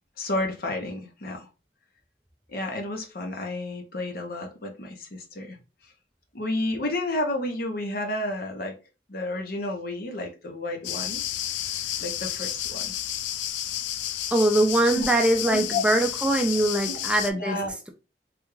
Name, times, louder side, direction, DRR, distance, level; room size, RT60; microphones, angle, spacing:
voice 1, 0.2-1.5 2.5-5.6 5.8-5.9 6.3-8.8 9.1-11.2 12.0-12.9 14.9-15.1 15.4-15.8 16.9-17.0 17.4-17.8, left 2 dB, 55° left, 0.8 m, -31 dB
sound 1, 10.8-17.3, left 11 dB, 85° left, 0.3 m, -31 dB
voice 2, 14.3-17.6, right 1 dB, 5° right, 0.4 m, -22 dB
3.4 x 2.4 x 3.0 m
head